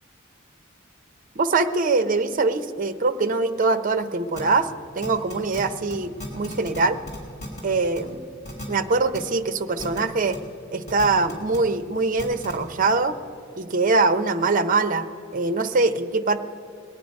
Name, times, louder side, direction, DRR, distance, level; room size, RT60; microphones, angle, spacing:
voice 1, 1.4-4.7 4.9-7.0 7.6-8.2 8.7-10.4 10.7-13.1 13.6-15.0 15.3-16.4, right 3 dB, 40° right, 10 dB, 0.6 m, -23 dB
sound 1, 4.4-4.5 5.0-5.6 5.9-6.0 6.2-6.8 7.1-7.6 8.0-8.1 8.4-8.6 9.1-9.2 9.8-10.0 10.3-10.4 10.9-11.6 12.2-12.5, left 1 dB, 35° left, 3.6 m, -35 dB
21.0 x 9.3 x 5.3 m, 2.8 s
head